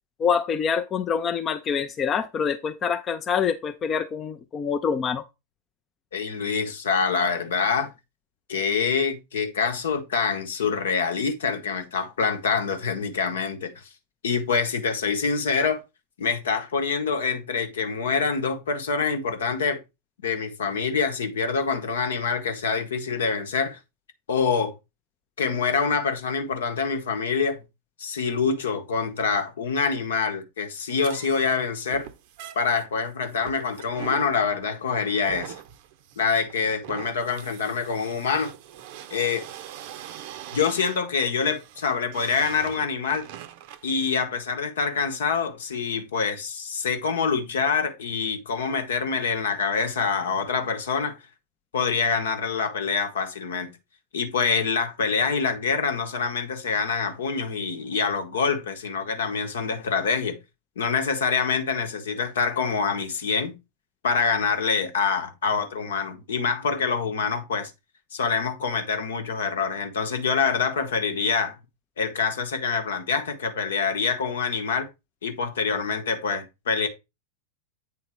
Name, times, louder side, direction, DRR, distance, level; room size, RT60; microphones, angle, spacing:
voice 1, 0.2-5.2, left 6 dB, 25° left, 0.5 m, -26 dB
voice 2, 6.1-7.9 8.5-13.7 14.2-15.8 16.2-19.8 20.2-23.8 24.3-24.7 25.4-27.6 28.0-32.1 32.5-35.5 36.2-38.5 39.1-39.5 40.5-43.3 43.8-51.2 51.7-53.7 54.1-60.4 60.8-63.6 64.0-67.7 68.1-71.6 72.0-74.9 75.2-76.9, left 5 dB, 65° left, 1.1 m, -25 dB
sound 1, 31.0-43.9, right 11 dB, 50° right, 0.6 m, -42 dB
8.6 x 3.9 x 4.4 m
figure-of-eight pair, 90°, 0 cm